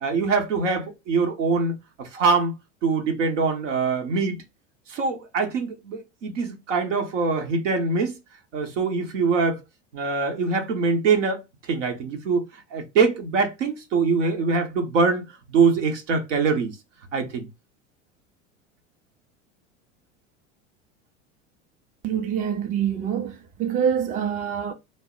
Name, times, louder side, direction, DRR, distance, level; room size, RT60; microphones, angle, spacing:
voice 1, 0.0-2.5 2.8-4.4 4.9-8.2 8.5-9.6 9.9-11.4 11.7-12.4 12.7-16.8 17.1-17.5, right 4 dB, 80° right, 0.9 m, -23 dB
voice 2, 22.0-24.7, right 8 dB, 25° right, 0.4 m, -25 dB
2.0 x 2.0 x 3.7 m
hypercardioid pair, 85°, 37 cm